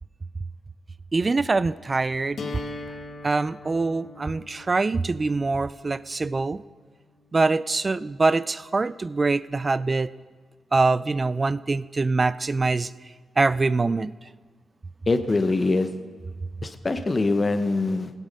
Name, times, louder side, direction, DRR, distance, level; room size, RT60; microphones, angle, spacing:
voice 1, 1.1-2.4 3.2-6.6 7.3-10.1 10.7-12.9 13.4-14.1, right 3 dB, 30° right, 18 dB, 0.3 m, -24 dB
sound 1, 2.4-8.3, left 3 dB, 60° left, 1.4 m, -41 dB
voice 2, 15.1-15.9 16.6-18.1, left 3 dB, 30° left, 9 dB, 0.9 m, -23 dB
17.0 x 8.2 x 5.4 m, 1.4 s
cardioid pair, 110°, 0 cm